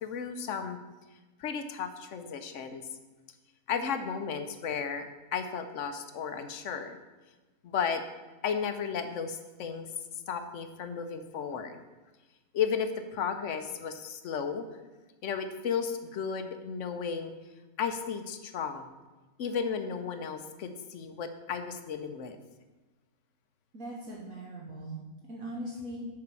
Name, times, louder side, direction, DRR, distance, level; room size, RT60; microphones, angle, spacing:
voice 1, 0.0-0.8 1.4-2.8 3.7-7.0 7.6-8.0 8.4-9.9 10.3-11.8 12.5-14.6 15.2-17.3 17.8-18.9 19.4-22.4, left 6 dB, 65° left, 8 dB, 0.9 m, -34 dB
voice 2, 23.7-25.0 25.3-26.0, right 1 dB, 70° right, -4 dB, 1.7 m, -40 dB
6.8 x 4.7 x 6.8 m, 1.2 s
omnidirectional pair, 1.5 m